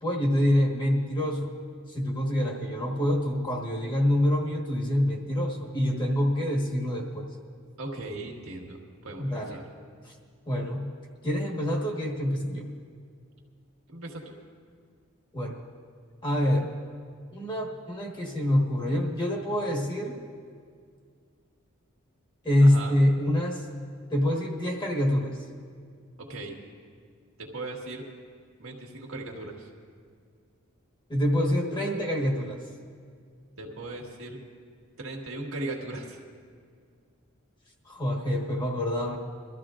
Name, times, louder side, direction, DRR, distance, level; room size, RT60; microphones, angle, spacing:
voice 1, 0.0-1.5 1.9-7.3 9.2-9.6 10.0-10.1 10.5-10.9 11.2-12.7 15.3-15.6 16.2-16.7 17.3-20.2 22.4-23.6 24.1-25.3 31.1-32.6 37.9-39.2, left 1 dB, 20° left, 0 dB, 1.4 m, -26 dB
voice 2, 7.8-9.6 13.9-14.4 22.6-23.0 26.2-26.6 27.4-28.1 28.6-29.7 33.6-34.4 35.0-36.2, right 2 dB, 75° right, 0 dB, 1.7 m, -38 dB
23.0 x 13.5 x 2.5 m, 2.1 s
head